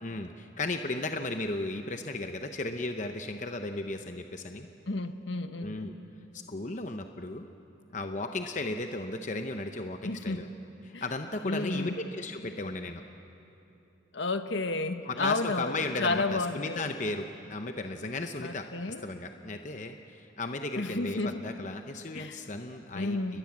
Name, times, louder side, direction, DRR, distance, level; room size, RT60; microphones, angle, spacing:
voice 1, 0.0-4.7 5.6-5.9 6.3-7.5 7.9-10.5 10.8-13.0 15.0-23.4, left 2 dB, 40° left, 6 dB, 0.9 m, -35 dB
voice 2, 4.9-5.8 10.0-10.4 10.9-11.0 11.4-12.0 14.1-16.8 18.4-19.0 20.8-21.4 22.1-22.4 22.9-23.4, left 3 dB, 65° left, 8 dB, 1.3 m, -31 dB
30.0 x 21.0 x 7.4 m, 2.9 s
head